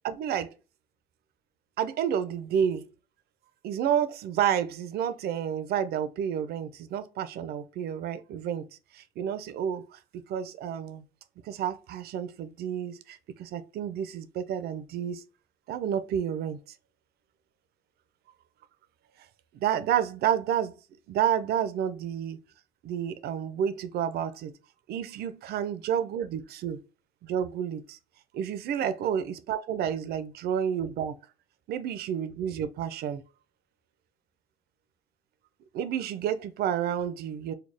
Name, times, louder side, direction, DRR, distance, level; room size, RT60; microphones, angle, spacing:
voice 1, 0.0-0.5 1.8-2.9 3.6-8.7 8.9-11.1 11.4-15.2 15.7-16.6 19.5-20.8 21.1-22.4 22.8-24.5 24.9-26.8 27.2-28.0 28.3-31.2 31.7-33.2 35.7-37.5, right 9 dB, 70° right, 0.6 m, -30 dB
4.2 x 2.3 x 3.3 m
cardioid pair, 110°, 17 cm